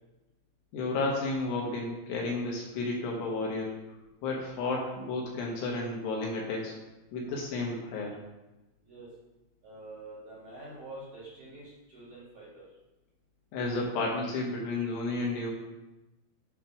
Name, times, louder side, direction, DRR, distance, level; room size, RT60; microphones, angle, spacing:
voice 1, 0.7-6.7 7.1-8.2 13.5-15.5, left 3 dB, 70° left, -2 dB, 2.9 m, -32 dB
voice 2, 9.6-12.6, right 2 dB, 55° right, -7 dB, 2.7 m, -46 dB
8.5 x 3.6 x 5.8 m, 1.0 s
omnidirectional pair, 5.4 m